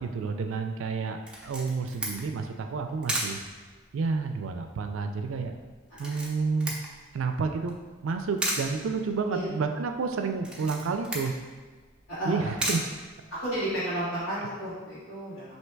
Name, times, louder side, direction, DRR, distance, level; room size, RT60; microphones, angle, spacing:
voice 1, 0.0-3.4 3.9-5.5 6.0-6.7 7.1-7.7 8.0-11.3 12.3-12.8, right 4 dB, 70° right, 6 dB, 0.4 m, -30 dB
Camera, 1.3-13.7, right 1 dB, 5° right, 0.5 m, -37 dB
voice 2, 12.1-12.5 13.3-15.5, right 1 dB, 75° left, -14 dB, 1.5 m, -32 dB
3.3 x 2.8 x 4.5 m, 1.5 s
head